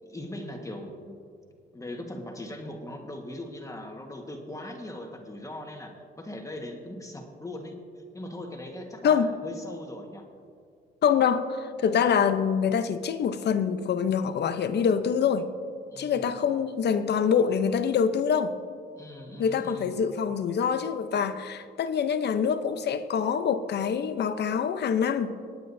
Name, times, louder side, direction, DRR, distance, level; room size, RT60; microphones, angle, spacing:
voice 1, 0.0-1.2 1.7-7.7 8.1-10.2 15.9-16.4 19.0-20.0, left 1 dB, 15° left, 2 dB, 1.5 m, -40 dB
voice 2, 11.0-15.5 16.0-18.5 19.4-25.3, left 7 dB, 60° left, 10 dB, 0.8 m, -25 dB
24.5 x 9.0 x 2.7 m, 2.3 s
cardioid pair, 90°, 20 cm